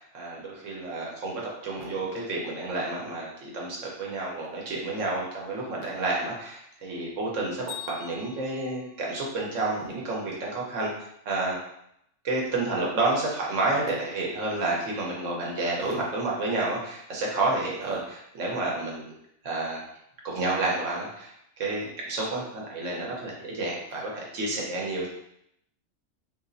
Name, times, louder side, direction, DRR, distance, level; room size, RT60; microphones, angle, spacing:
voice 1, 0.1-10.9 11.3-11.6 12.2-19.1 19.4-19.8 20.2-25.1, right 2 dB, 80° right, -3 dB, 1.2 m, -30 dB
Bell, 7.7-9.7, left 8 dB, 45° left, 1.4 m, -44 dB
3.3 x 2.9 x 2.6 m, 0.75 s
omnidirectional pair, 1.3 m